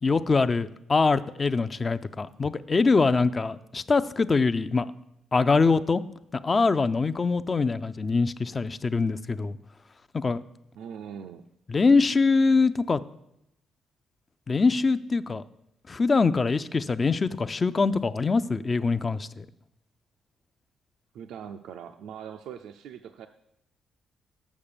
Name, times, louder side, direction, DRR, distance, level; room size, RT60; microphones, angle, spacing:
voice 1, 0.0-4.9 5.3-6.0 6.4-9.6 10.1-10.4 11.7-13.0 14.5-15.4 15.9-19.4, left 4 dB, 30° left, 13 dB, 0.4 m, -23 dB
voice 2, 10.8-11.5 21.1-23.3, right 8 dB, 80° right, 6 dB, 0.4 m, -41 dB
7.2 x 6.4 x 6.8 m, 0.83 s
cardioid pair, 90°, 0 cm